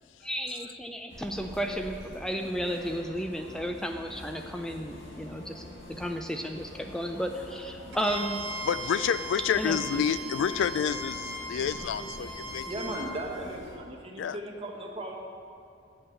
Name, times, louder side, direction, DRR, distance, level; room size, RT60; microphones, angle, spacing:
voice 1, 0.2-8.4 9.6-9.8, equal, 5° left, 4 dB, 0.3 m, -33 dB
sound 1, 1.1-13.8, left 1 dB, 70° left, 1.8 m, -46 dB
Bowed string instrument, 7.9-13.1, right 1 dB, 65° right, 1.5 m, -38 dB
voice 2, 8.6-12.7 14.2-14.4, left 7 dB, 85° left, 14 dB, 0.3 m, -29 dB
voice 3, 11.7-15.2, right 1 dB, 30° right, 0 dB, 1.0 m, -38 dB
8.5 x 5.4 x 7.0 m, 2.5 s
head